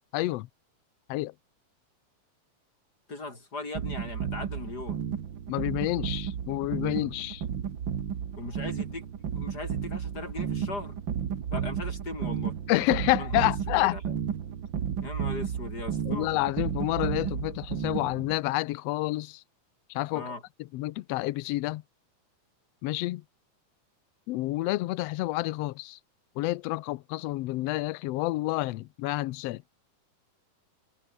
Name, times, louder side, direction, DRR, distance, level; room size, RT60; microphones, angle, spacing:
voice 1, 0.1-0.5 1.1-1.3 5.5-7.4 12.7-14.0 16.1-19.4 19.9-20.3 20.7-21.8 22.8-23.2 24.3-26.0 26.4-29.6, left 18 dB, 90° left, 1.4 m, -29 dB
voice 2, 3.1-5.1 8.4-9.0 9.3-11.0 11.5-12.6 13.2-14.0 15.0-16.3 20.1-20.4, left 3 dB, 30° left, 6.2 m, -39 dB
sound 1, 3.7-18.4, right 8 dB, 45° right, 1.8 m, -33 dB
omnidirectional pair, 3.6 m